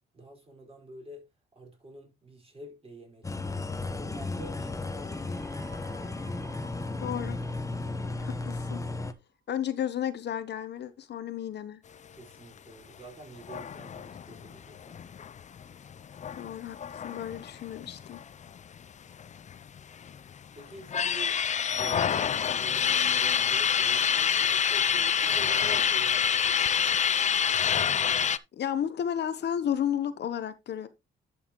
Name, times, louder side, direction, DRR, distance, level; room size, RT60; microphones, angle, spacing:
voice 1, 0.1-1.3 1.5-5.6 12.1-15.0 20.5-21.4 21.7-26.9 27.4-27.8, right 2 dB, 30° right, 4.8 m, -48 dB
sound 1, 3.2-9.1, left 2 dB, 15° left, 1.0 m, -34 dB
sound 2, 4.6-9.1, right 6 dB, 55° right, 3.7 m, -56 dB
voice 2, 7.0-7.4 8.2-8.8 9.5-11.8 16.4-18.2 28.5-30.9, left 9 dB, 60° left, 0.9 m, -32 dB
sound 3, 13.4-18.6 18.8-18.9 19.2-20.2 20.6-28.4, left 8 dB, 35° left, 0.5 m, -27 dB
11.0 x 6.3 x 3.0 m
cardioid pair, 90°, 20 cm